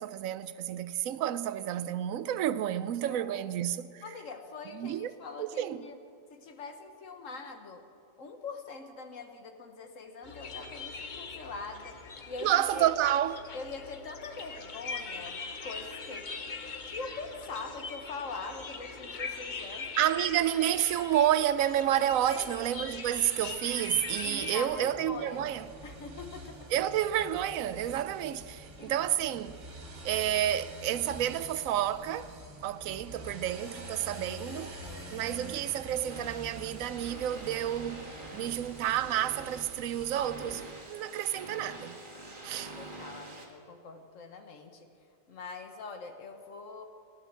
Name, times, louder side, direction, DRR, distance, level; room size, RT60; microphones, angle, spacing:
voice 1, 0.0-4.0 4.7-5.1 5.4-5.9 12.4-13.4 20.0-25.7 26.7-29.5 30.0-32.3 32.6-34.8 35.1-42.0 42.4-42.8, right 11 dB, 85° right, 1.0 m, -30 dB
voice 2, 3.1-3.5 4.0-6.0 6.3-7.8 8.2-12.0 12.3-12.9 13.5-16.3 16.9-19.9 22.3-22.5 24.2-25.4 25.8-26.7 28.8-29.0 34.8-35.3 42.8-44.9 45.3-46.9, left 4 dB, 70° left, 1.6 m, -43 dB
sound 1, 10.2-24.6, left 4 dB, 40° left, 1.0 m, -42 dB
sound 2, 22.1-40.7, right 1 dB, 60° right, 2.2 m, -47 dB
sound 3, 36.1-43.5, right 2 dB, 40° right, 1.9 m, -46 dB
16.0 x 10.5 x 7.5 m
omnidirectional pair, 1.4 m